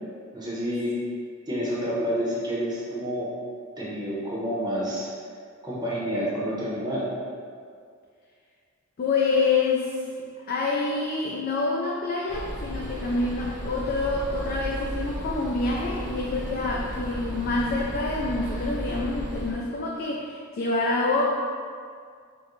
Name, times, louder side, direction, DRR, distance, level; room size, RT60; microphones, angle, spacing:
voice 1, 0.3-0.9 1.5-3.3 3.8-5.1 5.6-7.1, equal, 20° right, -6 dB, 0.7 m, -29 dB
voice 2, 9.0-10.0 10.5-21.2, left 3 dB, 45° left, -3 dB, 0.3 m, -27 dB
sound 1, 12.3-19.5, equal, 15° left, 0.8 m, -34 dB
4.4 x 2.2 x 3.0 m, 2.1 s
head